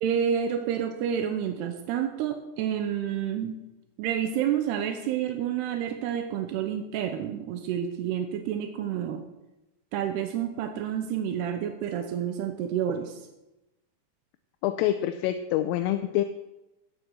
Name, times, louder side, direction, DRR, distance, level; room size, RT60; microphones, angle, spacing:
voice 1, 0.0-3.6 4.0-9.2 9.9-13.2, right 9 dB, 85° right, 5 dB, 2.4 m, -29 dB
voice 2, 14.6-16.2, left 13 dB, 85° left, 9 dB, 3.2 m, -26 dB
13.0 x 9.1 x 6.5 m, 0.99 s
omnidirectional pair, 5.9 m